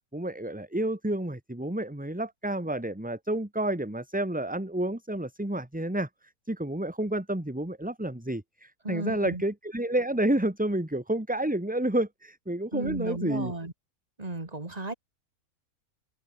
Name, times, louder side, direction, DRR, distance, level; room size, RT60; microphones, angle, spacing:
voice 1, 0.1-6.1 6.5-13.5, right 1 dB, 5° right, 1.8 m, -30 dB
voice 2, 8.8-9.4 12.7-13.7 14.2-14.9, right 2 dB, 25° right, 2.8 m, -34 dB
omnidirectional pair, 1.5 m